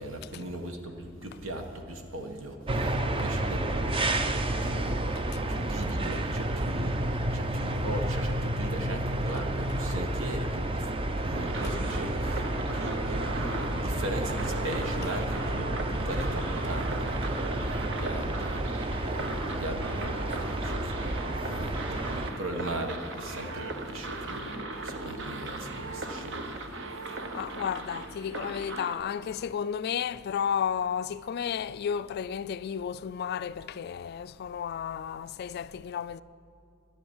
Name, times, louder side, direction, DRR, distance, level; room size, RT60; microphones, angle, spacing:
voice 1, 0.0-4.3 4.6-5.2 5.5-10.9 11.2-12.5 12.7-26.7, right 1 dB, 90° right, 1.4 m, -39 dB
sound 1, 2.7-22.3, right 1 dB, 25° right, 0.5 m, -30 dB
sound 2, 11.3-28.9, right 2 dB, 65° right, 1.0 m, -38 dB
voice 2, 27.3-36.2, left 8 dB, 50° left, 0.3 m, -33 dB
11.5 x 10.5 x 7.2 m
head